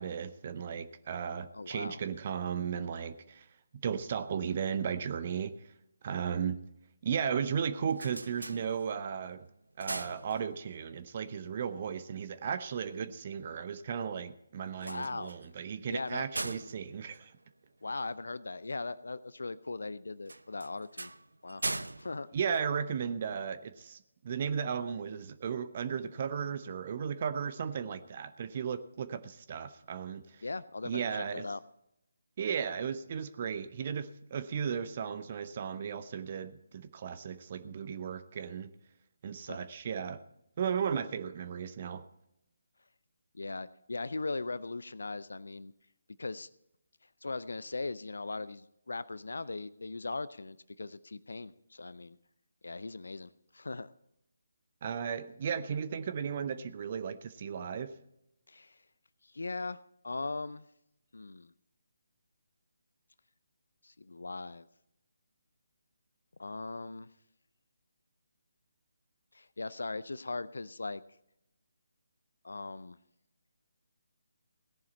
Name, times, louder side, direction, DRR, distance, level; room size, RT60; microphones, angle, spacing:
voice 1, 0.0-3.5 3.8-5.7 6.0-6.6 7.0-9.5 9.8-17.3 22.3-24.0 24.2-30.4 30.8-31.5 32.4-38.7 39.2-40.2 40.6-42.1 54.8-57.9, right 7 dB, 35° right, 12 dB, 0.7 m, -35 dB
voice 2, 1.5-2.0 14.8-15.3 15.9-16.2 17.8-21.1 21.4-21.6 22.0-22.3 30.4-31.6 39.4-39.6 43.3-45.7 46.2-46.5 47.2-52.2 52.6-53.9 58.5-58.8 59.2-60.6 61.1-61.5 63.8-64.7 66.4-67.1 69.3-71.0 72.4-73.0, left 3 dB, 60° left, 17 dB, 0.5 m, -39 dB
sound 1, 7.7-9.2 9.6-10.9 14.7-18.1 20.2-23.3, right 2 dB, 70° right, 0.6 m, -41 dB
17.5 x 11.0 x 4.3 m, 0.82 s
figure-of-eight pair, 145°, 0 cm